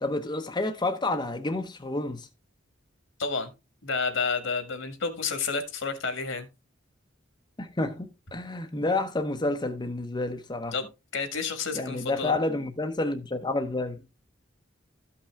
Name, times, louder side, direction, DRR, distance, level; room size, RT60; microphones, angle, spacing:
voice 1, 0.0-2.3 7.6-10.7 11.7-14.0, left 2 dB, 25° left, 0.8 m, -29 dB
voice 2, 3.2-3.5 3.8-6.5 10.7-10.9 11.1-12.3, left 4 dB, 70° left, 1.7 m, -30 dB
13.0 x 5.7 x 3.4 m
head